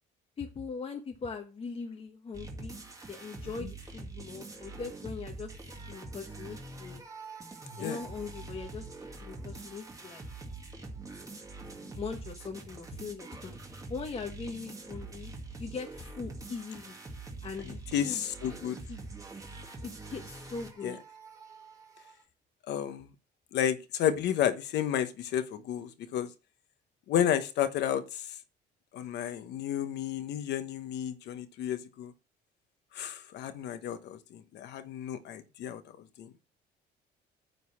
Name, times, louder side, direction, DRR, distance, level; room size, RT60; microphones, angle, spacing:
voice 1, 0.4-2.8 3.1-5.5 5.9-7.0 7.8-8.9 9.2-10.2 11.7-13.6 13.9-15.3 15.6-17.0 17.4-18.2 18.4-18.6 18.9-19.0 19.8-21.0, left 5 dB, 30° left, 1.1 m, -40 dB
sound 1, 2.3-22.2, right 3 dB, 20° right, 2.0 m, -44 dB
voice 2, 17.9-18.8 20.8-21.0 22.7-23.1 23.5-26.3 27.1-28.4 28.9-32.1 32.9-36.3, left 10 dB, 70° left, 1.1 m, -32 dB
9.7 x 4.0 x 7.2 m
cardioid pair, 125°, 18 cm